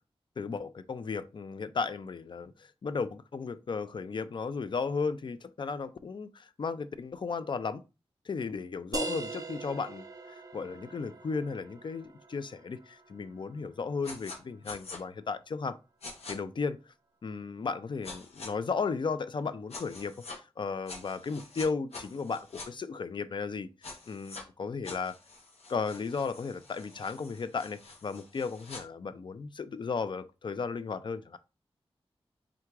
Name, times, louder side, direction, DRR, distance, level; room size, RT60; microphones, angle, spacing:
voice 1, 0.4-7.8 8.3-15.8 16.3-16.8 17.2-23.7 24.1-25.1 25.7-31.4, left 5 dB, 50° left, 0.4 m, -35 dB
sound 1, 8.9-14.3, right 3 dB, 35° right, 0.6 m, -42 dB
sound 2, 14.0-14.4 14.6-15.0 16.0-16.3 18.0-18.5 19.7-20.4 20.9-22.7 23.8-24.4 24.8-28.8, left 3 dB, 90° left, 1.0 m, -46 dB
3.6 x 2.4 x 4.5 m
wide cardioid pair, 80°, 10 cm